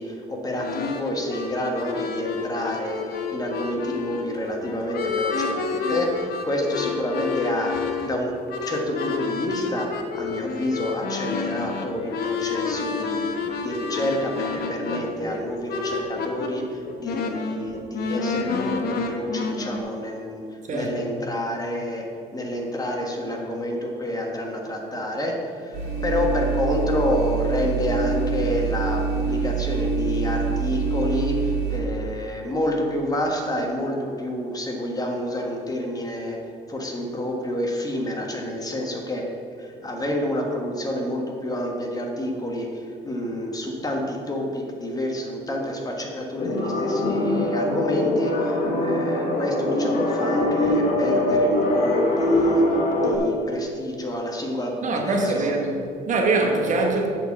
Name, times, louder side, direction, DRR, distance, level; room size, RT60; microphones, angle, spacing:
voice 1, 0.0-8.3 8.6-13.4 13.6-22.1 22.3-36.4 36.7-39.3 39.6-52.6 53.0-55.5, left 1 dB, 20° left, 1.4 m, -29 dB
sound 1, 0.6-16.5 16.9-19.8, left 5 dB, 65° left, 1.0 m, -29 dB
voice 2, 20.7-21.1 54.8-57.1, right 2 dB, 45° right, 1.3 m, -23 dB
sound 2, 25.7-31.8, right 4 dB, 85° right, 2.1 m, -25 dB
sound 3, 46.4-53.2, left 1 dB, 50° left, 2.2 m, -22 dB
7.9 x 4.6 x 7.2 m
cardioid pair, 110°, 17 cm